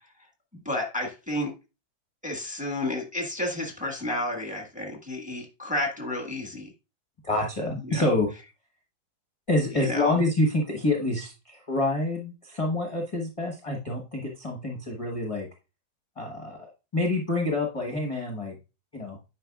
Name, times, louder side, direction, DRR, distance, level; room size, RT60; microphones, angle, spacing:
voice 1, 0.6-1.5 2.2-6.7 7.8-8.1 9.7-10.2, left 1 dB, 5° right, 1 dB, 1.3 m, -31 dB
voice 2, 7.2-8.3 9.5-15.5 16.2-18.6 18.9-19.2, left 2 dB, 25° left, 0 dB, 0.9 m, -27 dB
9.4 x 5.2 x 2.3 m, 0.28 s
omnidirectional pair, 2.1 m